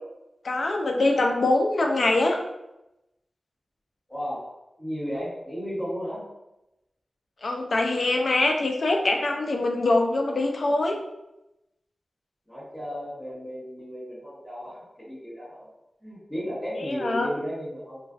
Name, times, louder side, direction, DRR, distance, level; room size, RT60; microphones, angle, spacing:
voice 1, 0.4-2.4 7.4-11.0 16.8-17.3, left 2 dB, 60° left, 2 dB, 0.3 m, -23 dB
voice 2, 4.1-4.5 4.8-6.3 12.5-15.7 16.0-18.1, equal, 5° left, -13 dB, 1.1 m, -34 dB
2.4 x 2.2 x 2.4 m, 0.92 s
wide cardioid pair, 115°, 0 cm